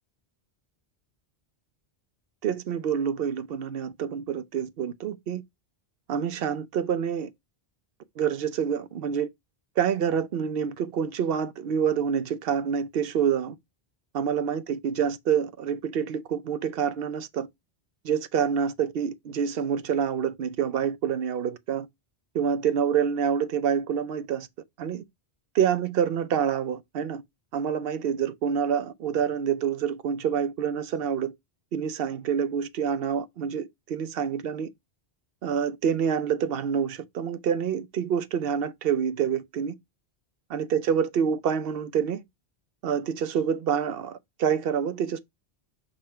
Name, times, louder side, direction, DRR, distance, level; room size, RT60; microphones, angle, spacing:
voice 1, 2.4-5.4 6.1-7.3 8.2-9.3 9.8-13.6 14.1-17.5 18.0-21.9 22.3-24.5 24.8-25.0 25.5-27.2 27.5-31.3 31.7-34.7 35.4-39.7 40.5-42.2 42.8-45.2, right 7 dB, 65° right, 0.9 m, -27 dB
5.8 x 3.7 x 4.4 m
omnidirectional pair, 1.1 m